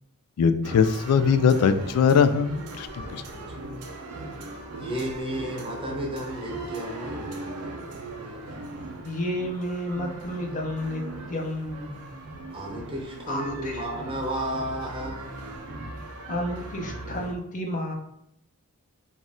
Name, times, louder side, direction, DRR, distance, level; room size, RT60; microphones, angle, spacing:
voice 1, 0.4-3.2, left 6 dB, 85° left, 12 dB, 0.3 m, -21 dB
sound 1, 0.6-17.3, right 2 dB, 90° right, 0.7 m, -39 dB
voice 2, 3.1-3.5 4.8-7.8 12.5-15.5, equal, 25° right, 0 dB, 0.7 m, -33 dB
voice 3, 9.0-11.0 11.3-12.0 13.3-13.8 16.3-17.9, left 1 dB, 35° left, 2 dB, 0.6 m, -31 dB
4.0 x 2.5 x 3.6 m, 0.76 s
head